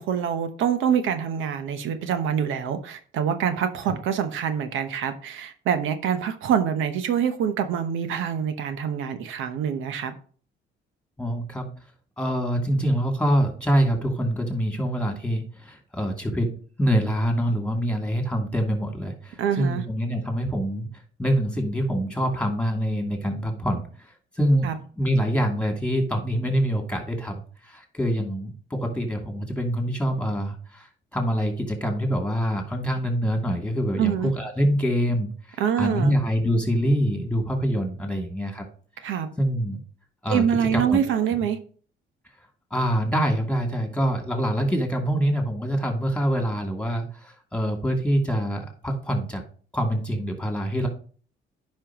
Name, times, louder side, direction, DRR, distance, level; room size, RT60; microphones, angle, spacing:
voice 1, 0.0-10.1 19.4-19.8 24.6-24.8 34.0-34.3 35.6-36.1 39.0-39.3 40.3-41.6, right 8 dB, 85° right, 9 dB, 0.9 m, -25 dB
voice 2, 11.2-11.7 12.2-16.5 16.8-20.9 21.2-38.6 39.0-39.8 40.2-40.4 40.7-41.4 42.7-49.4 49.7-50.9, equal, 5° left, 3 dB, 2.6 m, -25 dB
10.0 x 5.5 x 3.0 m, 0.42 s
cardioid pair, 90°, 20 cm